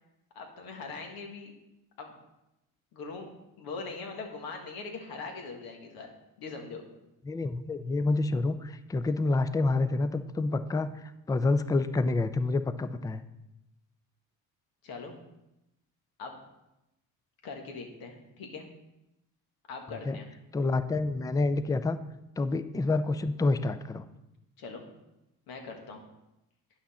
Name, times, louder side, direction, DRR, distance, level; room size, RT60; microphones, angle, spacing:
voice 1, 0.4-1.5 2.0-2.2 2.9-6.1 6.4-6.8 14.8-15.1 16.2-16.4 17.4-18.7 19.7-20.3 24.6-24.8 25.5-26.0, left 4 dB, 75° left, 3 dB, 1.7 m, -41 dB
voice 2, 7.3-13.2 20.1-20.2 20.5-22.0 22.4-24.0, left 3 dB, 10° left, 12 dB, 0.3 m, -28 dB
9.7 x 6.0 x 4.2 m, 0.91 s
cardioid pair, 105°, 36 cm